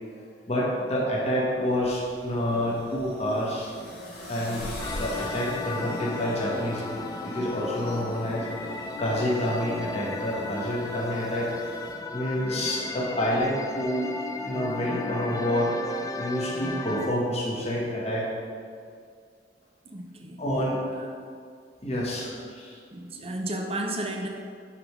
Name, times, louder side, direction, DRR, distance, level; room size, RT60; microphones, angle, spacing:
voice 1, 0.5-3.7 4.3-4.7 5.0-7.0 7.2-8.5 9.0-11.5 12.1-14.1 14.5-15.7 16.2-18.3 20.4-20.8 21.8-22.3, equal, 35° left, -4 dB, 1.5 m, -28 dB
sound 1, 1.6-11.9, left 1 dB, 55° left, 1.7 m, -43 dB
sound 2, 4.8-17.1, left 3 dB, 20° left, 0.4 m, -35 dB
voice 2, 19.8-20.4 21.0-21.3 22.2-22.4 22.9-24.3, right 1 dB, 30° right, 2 dB, 0.7 m, -34 dB
8.7 x 3.5 x 4.8 m, 2.2 s
head